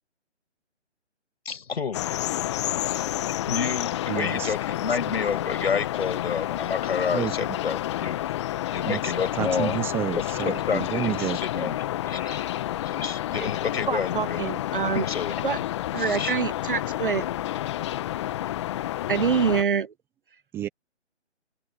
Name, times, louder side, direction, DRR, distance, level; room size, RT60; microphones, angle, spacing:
voice 1, 1.4-8.3 8.7-9.8 10.2-14.4 14.9-15.4 16.0-16.3, left 6 dB, 55° left, 8.0 m, -30 dB
sound 1, 1.9-19.6, left 13 dB, 25° left, 1.7 m, -30 dB
voice 2, 4.1-4.5 4.9-5.0 7.1-7.6 8.9-11.7 20.5-20.7, right 12 dB, 5° right, 1.1 m, -30 dB
voice 3, 13.9-15.0 15.4-15.6 15.9-17.3 19.1-19.9, right 6 dB, 45° right, 0.6 m, -26 dB
figure-of-eight pair, 155°, 36 cm